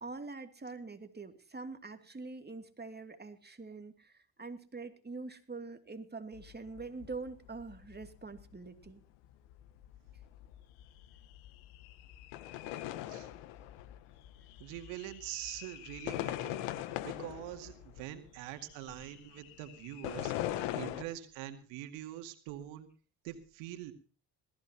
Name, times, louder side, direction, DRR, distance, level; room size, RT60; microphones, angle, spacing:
voice 1, 0.0-9.0, right 3 dB, 20° right, 7 dB, 2.7 m, -44 dB
sound 1, 6.3-21.0, left 13 dB, 90° left, 1.4 m, -42 dB
voice 2, 14.6-16.6 17.0-22.9 23.2-23.9, right 13 dB, 85° right, 7 dB, 2.2 m, -44 dB
21.0 x 15.0 x 2.9 m, 0.38 s
supercardioid pair, 70°, 46 cm